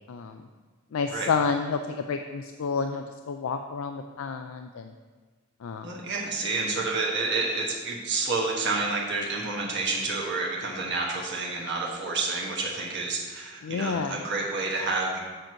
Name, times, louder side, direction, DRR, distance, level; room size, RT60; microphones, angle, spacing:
voice 1, 0.1-0.4 0.9-4.9 5.6-5.9 13.6-14.2, left 5 dB, 80° left, 6 dB, 0.4 m, -30 dB
voice 2, 5.8-15.2, right 3 dB, 60° right, -2 dB, 1.2 m, -29 dB
7.6 x 4.5 x 6.3 m, 1.4 s
head